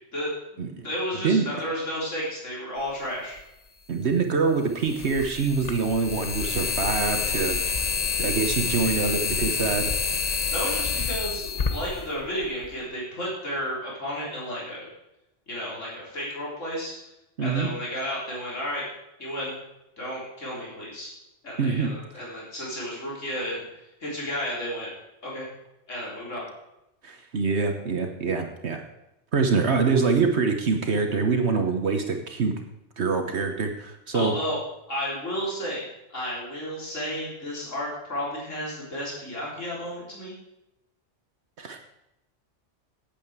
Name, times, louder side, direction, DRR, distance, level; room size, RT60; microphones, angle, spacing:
voice 1, 0.8-3.4 10.5-14.9 15.5-17.0 17.4-18.8 19.2-19.6 20.0-21.1 21.4-23.6 24.0-24.9 25.2-25.5 25.9-26.5 34.1-34.6 34.9-40.3, equal, 85° left, -5 dB, 4.1 m, -32 dB
sound 1, 3.4-3.5 4.8-12.8, left 5 dB, 35° left, 0.9 m, -28 dB
voice 2, 3.9-7.6 8.2-9.9 17.4-17.7 21.6-21.9 27.0-28.8 29.3-32.6 33.0-34.4 41.6-41.8, right 4 dB, 65° right, 5 dB, 1.3 m, -25 dB
9.0 x 8.5 x 7.9 m, 0.88 s
omnidirectional pair, 1.2 m